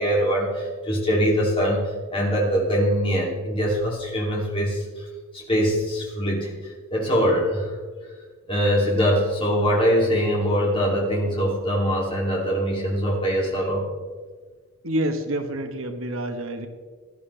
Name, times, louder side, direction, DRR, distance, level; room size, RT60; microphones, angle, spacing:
voice 1, 0.0-5.1 5.3-7.8 8.5-13.9, equal, 25° left, -2 dB, 2.7 m, -23 dB
voice 2, 14.8-16.7, right 1 dB, 65° right, 7 dB, 1.1 m, -27 dB
17.0 x 11.5 x 3.3 m, 1.5 s
head